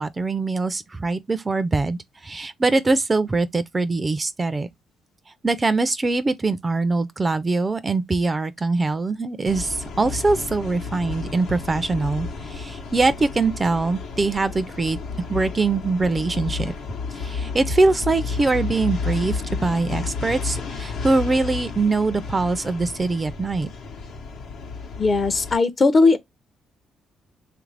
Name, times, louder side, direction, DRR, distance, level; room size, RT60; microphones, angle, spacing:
voice 1, 0.0-4.7 5.4-15.0 15.3-16.7 17.2-23.7, right 3 dB, 25° right, 0.4 m, -23 dB
sound 1, 9.5-25.6, left 4 dB, 85° left, 0.9 m, -32 dB
voice 2, 25.0-26.2, left 3 dB, 35° left, 0.5 m, -18 dB
3.2 x 2.5 x 3.2 m
cardioid pair, 90°, 0 cm